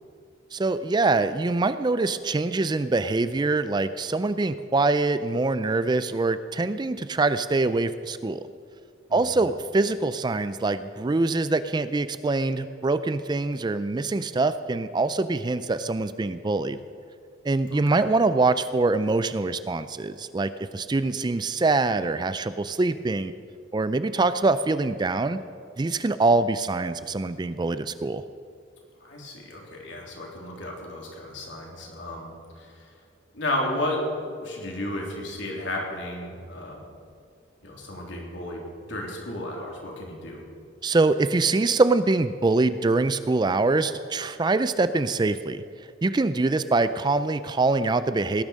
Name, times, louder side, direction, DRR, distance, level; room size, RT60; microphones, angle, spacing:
voice 1, 0.5-8.4 9.1-16.8 17.4-23.3 23.7-25.4 25.8-28.2 40.8-45.6 46.0-48.4, right 3 dB, 20° right, 13 dB, 0.3 m, -24 dB
voice 2, 9.1-9.4 17.7-18.0 29.0-32.3 32.6-32.8 33.3-36.8 37.6-40.4, left 1 dB, 65° left, -1 dB, 3.4 m, -33 dB
18.0 x 11.0 x 6.4 m, 2.3 s
head